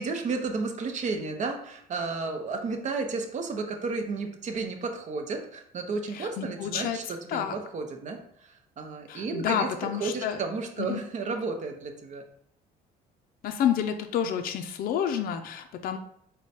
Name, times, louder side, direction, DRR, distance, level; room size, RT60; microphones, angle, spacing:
voice 1, 0.0-9.7 10.0-12.2, right 4 dB, 45° right, 4 dB, 0.7 m, -32 dB
voice 2, 6.1-7.0 7.3-7.6 9.1-10.4 10.8-11.0 13.4-16.0, left 9 dB, 60° left, 5 dB, 0.4 m, -29 dB
4.6 x 2.2 x 4.2 m, 0.69 s
cardioid pair, 110°, 17 cm